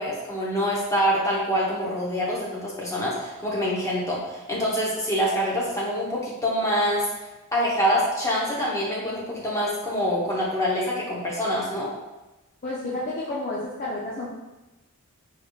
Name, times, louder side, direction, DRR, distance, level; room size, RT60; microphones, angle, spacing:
voice 1, 0.0-11.9, equal, 15° left, -5 dB, 0.9 m, -25 dB
voice 2, 12.6-14.3, left 2 dB, 35° left, -6 dB, 0.5 m, -30 dB
4.8 x 3.4 x 2.3 m, 1.0 s
head